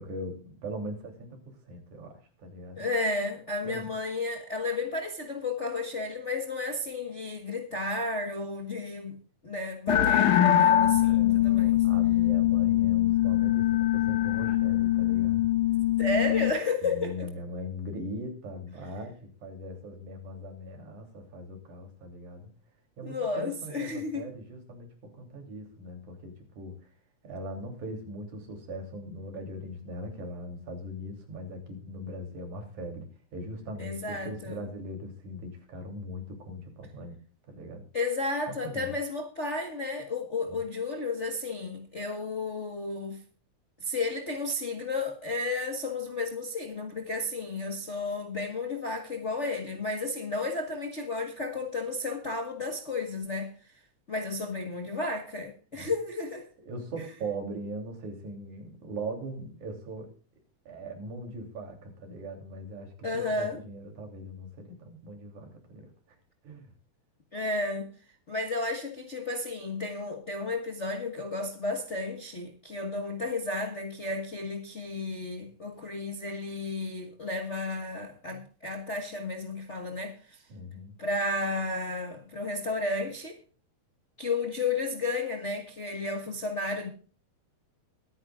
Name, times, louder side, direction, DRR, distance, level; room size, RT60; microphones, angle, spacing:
voice 1, 0.0-1.4 1.6-2.9 3.6-3.9 11.0-15.5 16.8-22.5 23.0-26.8 27.2-37.2 37.5-37.8 38.6-38.9 40.5-40.6 55.7-55.9 56.6-60.1 60.7-65.9 66.4-66.7 78.3-78.4 80.5-81.0, equal, 80° right, 4.5 m, -40 dB
voice 2, 2.8-9.2 9.4-11.8 16.0-17.3 23.0-24.3 33.8-34.6 37.9-43.2 43.8-53.7 54.1-56.4 63.0-63.6 67.3-67.9 68.3-80.4 81.0-83.4 84.2-86.9, left 3 dB, 35° left, 1.1 m, -32 dB
sound 1, 9.9-16.5, left 13 dB, 80° left, 2.5 m, -23 dB
22.5 x 9.8 x 2.4 m
omnidirectional pair, 3.4 m